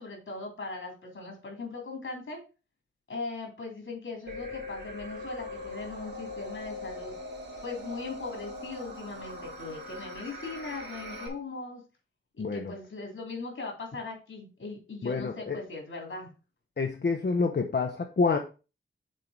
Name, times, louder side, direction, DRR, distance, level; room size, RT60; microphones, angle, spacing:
voice 1, 0.0-2.4 3.1-7.2 7.6-11.8 12.4-16.3, left 3 dB, 75° left, 3.6 m, -39 dB
sound 1, 4.3-11.3, left 1 dB, 55° right, 2.0 m, -41 dB
voice 2, 12.4-12.7 15.0-15.6 16.8-18.4, left 4 dB, 55° left, 0.9 m, -28 dB
7.5 x 3.8 x 5.2 m
wide cardioid pair, 75°, 21 cm